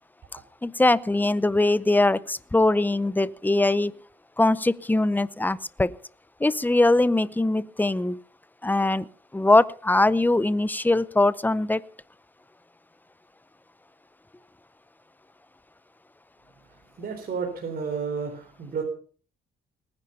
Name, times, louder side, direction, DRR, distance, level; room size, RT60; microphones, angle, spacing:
voice 1, 0.6-3.9 4.4-5.9 6.4-8.2 8.6-9.0 9.3-11.8, left 2 dB, 10° left, 18 dB, 0.7 m, -21 dB
voice 2, 17.0-18.8, right 5 dB, 50° right, 2 dB, 3.9 m, -31 dB
19.0 x 10.5 x 5.6 m, 0.43 s
cardioid pair, 90°, 20 cm